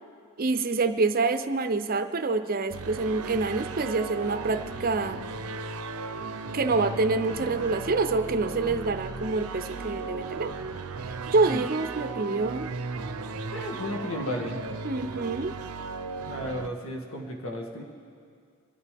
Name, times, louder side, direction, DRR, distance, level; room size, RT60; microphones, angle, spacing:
voice 1, 0.4-5.2 6.5-10.5 11.3-12.7 14.8-15.5, right 3 dB, 40° right, 10 dB, 0.6 m, -26 dB
sound 1, 2.7-16.7, right 4 dB, 85° right, 0.6 m, -36 dB
voice 2, 13.5-14.6 16.3-17.8, left 1 dB, 65° left, -1 dB, 2.1 m, -34 dB
24.5 x 11.0 x 3.5 m, 2.1 s
head